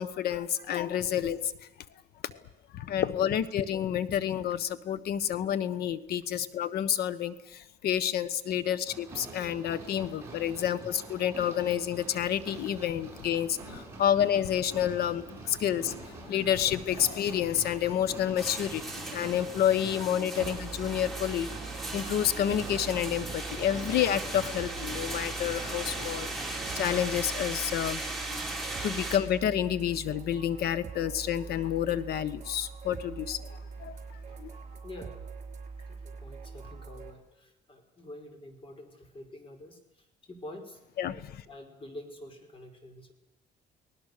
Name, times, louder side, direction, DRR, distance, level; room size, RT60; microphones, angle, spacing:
voice 1, 0.0-1.5 2.2-2.4 2.7-21.5 21.9-28.0 28.3-28.4 28.8-34.0 34.4-34.5 41.0-41.4, left 10 dB, 65° left, 16 dB, 1.3 m, -29 dB
sound 1, 8.9-27.2, right 3 dB, 15° right, 7.8 m, -46 dB
sound 2, 18.4-29.2, right 2 dB, ahead, 4.6 m, -37 dB
sound 3, 20.4-37.1, right 5 dB, 45° right, 5.1 m, -43 dB
voice 2, 34.8-35.2 35.9-43.1, left 1 dB, 30° left, 6 dB, 4.8 m, -47 dB
29.5 x 19.0 x 6.8 m, 0.87 s
cardioid pair, 110°, 17 cm